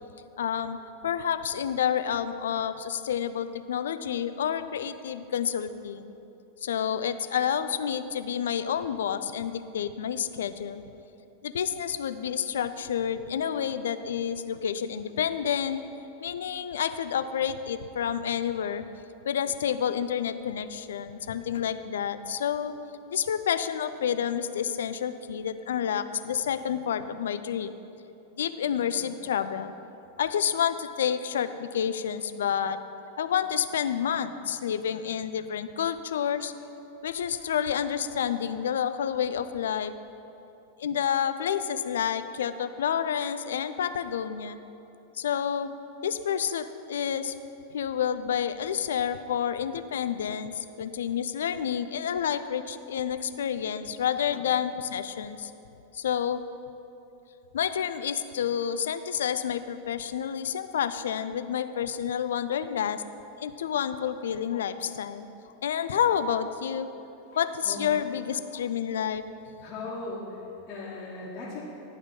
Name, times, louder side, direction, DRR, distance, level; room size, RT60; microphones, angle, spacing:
voice 1, 0.4-0.8 1.0-6.1 6.6-10.8 11.4-15.8 16.2-18.8 19.3-22.7 23.1-27.8 28.4-29.7 30.2-32.8 33.2-36.5 37.0-39.9 40.8-44.6 45.2-45.7 46.0-47.3 47.7-55.5 55.9-56.4 57.5-63.0 63.4-65.3 65.6-66.9 67.3-69.2, left 8 dB, 60° left, 11 dB, 0.3 m, -29 dB
voice 2, 67.3-67.9 69.6-71.6, left 3 dB, 35° left, -6 dB, 1.2 m, -38 dB
11.0 x 3.6 x 5.2 m, 2.9 s
figure-of-eight pair, 90°, 0 cm